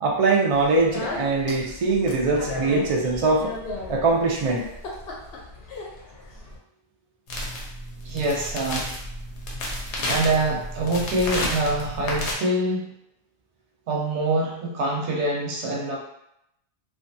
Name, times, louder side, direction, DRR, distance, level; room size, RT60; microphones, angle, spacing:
voice 1, 0.0-3.5 3.9-4.7, right 3 dB, 50° right, -1 dB, 0.4 m, -22 dB
Speech, 0.5-6.6, left 2 dB, 65° left, 0.8 m, -36 dB
sound 1, 7.3-12.3, left 1 dB, 90° left, 1.0 m, -31 dB
voice 2, 8.0-9.0 9.7-12.9 13.9-16.0, right 2 dB, 80° right, -2 dB, 1.0 m, -25 dB
2.6 x 2.3 x 2.6 m, 0.79 s
omnidirectional pair, 1.1 m